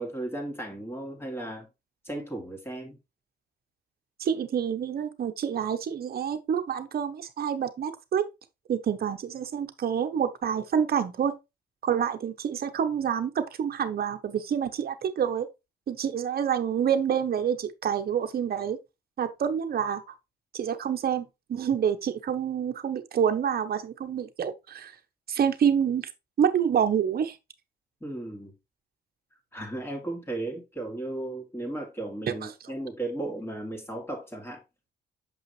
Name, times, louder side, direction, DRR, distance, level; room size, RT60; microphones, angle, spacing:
voice 1, 0.0-1.7 2.0-3.0 28.0-28.5 29.5-34.6, right 2 dB, 10° left, 2.6 m, -35 dB
voice 2, 4.2-8.2 8.7-11.3 11.8-15.5 15.9-18.8 19.2-20.0 20.5-24.9 25.3-26.1 26.4-27.4 32.2-32.7, right 8 dB, 50° right, 1.0 m, -27 dB
6.4 x 5.5 x 3.2 m
cardioid pair, 90°, 20 cm